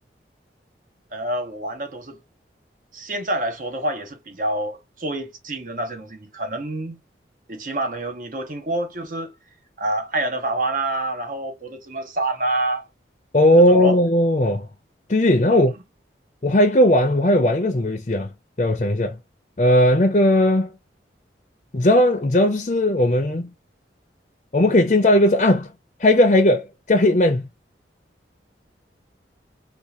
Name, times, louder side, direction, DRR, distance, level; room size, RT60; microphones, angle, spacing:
voice 1, 1.1-2.2 2.9-7.0 7.5-9.3 9.8-12.9 13.7-14.0 15.5-15.6, right 1 dB, 45° right, 0.8 m, -27 dB
voice 2, 13.3-14.7 15.1-15.7 16.4-18.3 18.6-19.2 19.6-20.7 21.7-23.5 24.5-25.7 26.0-27.5, left 1 dB, 40° left, 0.6 m, -17 dB
3.7 x 2.4 x 2.8 m
head